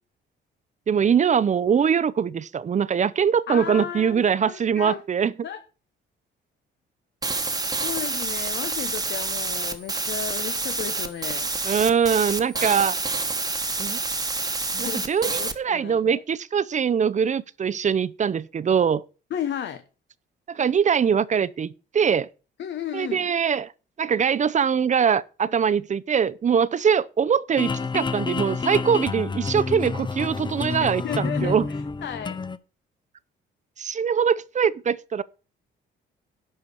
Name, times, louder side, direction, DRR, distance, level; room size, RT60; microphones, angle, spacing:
voice 1, 0.9-5.3 11.6-13.0 13.8-14.0 14.8-19.0 20.5-22.3 22.9-23.7 24.0-31.7 33.8-35.2, right 7 dB, 40° right, 0.6 m, -22 dB
voice 2, 3.5-5.0 5.4-5.6 7.4-11.5 12.5-12.8 14.7-16.2 19.3-19.8 22.6-23.3 30.8-32.4, left 9 dB, 65° left, 1.1 m, -34 dB
sound 1, 7.2-15.5, right 3 dB, 20° right, 1.2 m, -28 dB
sound 2, 27.6-32.6, left 4 dB, 25° left, 0.7 m, -29 dB
11.0 x 4.6 x 6.8 m
cardioid pair, 90°, 20 cm